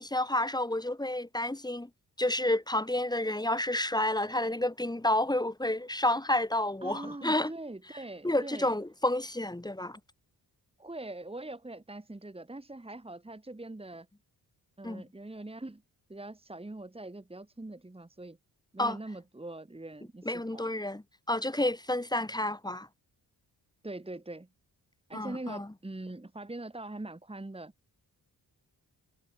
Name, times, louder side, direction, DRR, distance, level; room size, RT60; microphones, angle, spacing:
voice 1, 0.0-1.9 2.2-7.5 8.2-10.0 14.8-15.0 18.8-19.0 20.2-22.9 25.1-25.7, left 1 dB, 10° left, 2.8 m, -30 dB
voice 2, 6.8-8.7 10.8-14.1 14.8-15.8 16.1-18.4 18.7-20.7 23.8-24.5 25.1-27.7, right 2 dB, 15° right, 3.2 m, -42 dB
wide cardioid pair, 115°, 41 cm